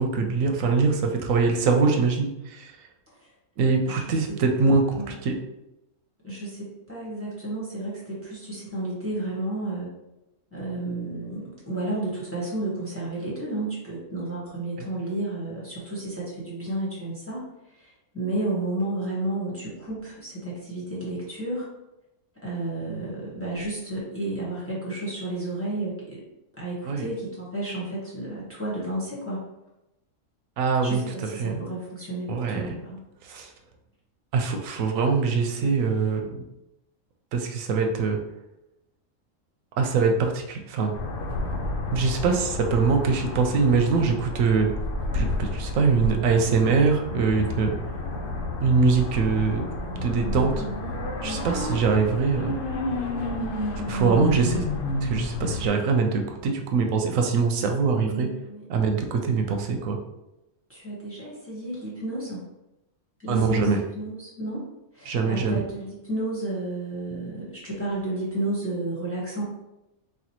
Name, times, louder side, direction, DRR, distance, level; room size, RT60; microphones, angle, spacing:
voice 1, 0.0-2.7 3.6-4.8 5.2-5.4 26.9-27.1 30.6-31.0 31.4-31.6 32.3-32.7 33.3-33.5 34.3-36.4 37.3-38.2 39.8-40.9 41.9-44.7 45.1-47.7 48.6-49.7 50.0-50.5 51.2-52.6 53.9-54.7 55.0-58.3 58.7-60.0 63.3-63.8 65.1-65.6, right 4 dB, 90° right, 4 dB, 1.0 m, -23 dB
voice 2, 3.8-4.4 5.0-5.2 6.2-9.9 10.5-17.4 17.8-21.7 22.4-26.2 26.6-29.4 30.8-33.0 50.5-50.9 51.2-51.6 58.0-58.6 60.7-62.4 63.2-64.6 64.9-69.4, right 2 dB, 10° left, -7 dB, 1.0 m, -32 dB
sound 1, 40.9-55.7, left 2 dB, 80° left, 1.0 m, -30 dB
4.3 x 2.3 x 2.9 m, 0.91 s
omnidirectional pair, 1.3 m